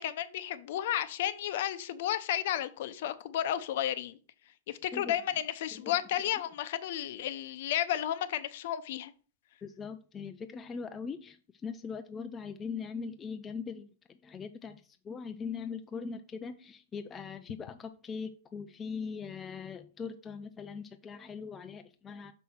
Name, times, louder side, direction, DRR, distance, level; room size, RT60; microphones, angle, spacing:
voice 1, 0.0-4.2 4.7-9.1, left 11 dB, 50° left, 0.6 m, -32 dB
voice 2, 9.6-22.3, left 5 dB, 15° left, 0.3 m, -41 dB
6.1 x 5.5 x 4.4 m
supercardioid pair, 170°, 0 cm